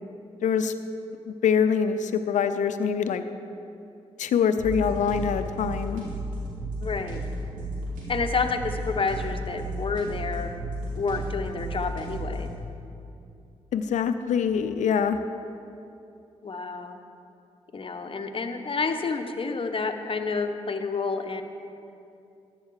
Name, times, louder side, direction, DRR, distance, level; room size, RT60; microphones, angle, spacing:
voice 1, 0.4-0.7 1.3-3.2 4.2-6.0 13.7-15.2, left 7 dB, 70° left, 10 dB, 0.7 m, -24 dB
sound 1, 4.6-12.6, right 1 dB, 85° right, 2.4 m, -33 dB
voice 2, 6.8-7.2 8.1-10.5 10.9-12.5 16.4-17.0 17.7-21.4, left 4 dB, 45° left, 6 dB, 1.1 m, -29 dB
13.5 x 9.6 x 4.9 m, 2.7 s
hypercardioid pair, 40°, 13 cm